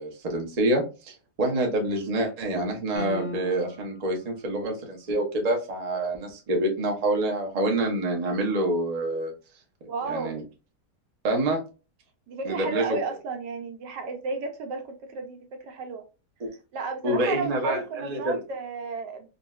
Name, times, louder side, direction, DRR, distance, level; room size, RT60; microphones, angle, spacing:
voice 1, 0.0-9.3 10.0-10.4 11.2-11.6 12.4-13.0 17.0-18.4, right 1 dB, 55° right, 0.4 m, -27 dB
sound 1, 3.0-4.0, left 1 dB, 50° left, 0.8 m, -36 dB
voice 2, 9.9-10.4 12.3-16.0 16.7-19.3, right 4 dB, 85° right, 1.3 m, -33 dB
3.8 x 2.2 x 2.3 m
omnidirectional pair, 1.8 m